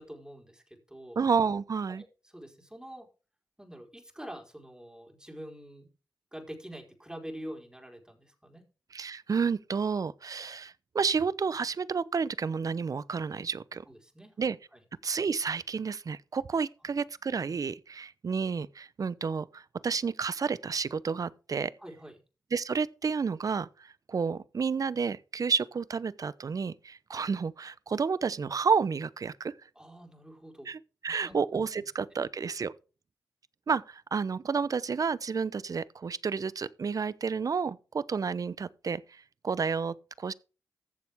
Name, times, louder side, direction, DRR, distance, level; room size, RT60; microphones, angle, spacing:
voice 1, 0.0-1.2 1.9-2.1 2.3-3.1 3.6-5.9 6.3-8.6 13.9-14.4 14.7-14.8 21.8-22.1 29.7-30.7 31.2-31.3 32.1-32.2, equal, 10° right, 4.7 m, -45 dB
voice 2, 1.2-2.0 8.9-13.8 14.4-14.6 15.0-21.7 22.5-29.5 30.7-32.7 33.7-40.3, right 5 dB, 55° right, 0.8 m, -31 dB
14.5 x 7.1 x 3.6 m
supercardioid pair, 40°, 7 cm